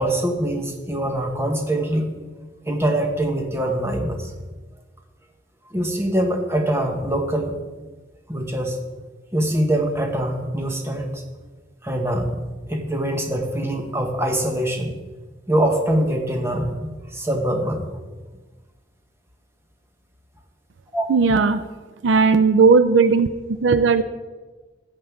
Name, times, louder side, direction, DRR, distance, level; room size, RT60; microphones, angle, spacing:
voice 1, 0.0-2.1 2.7-4.3 5.7-7.5 8.3-8.8 9.3-11.2 11.8-12.4 12.7-14.9 15.5-17.9 20.9-21.1, right 1 dB, 15° right, 3 dB, 1.2 m, -23 dB
voice 2, 21.1-21.6 22.0-23.3 23.6-24.0, right 4 dB, 80° right, 13 dB, 0.5 m, -16 dB
16.5 x 7.4 x 3.6 m, 1.3 s
head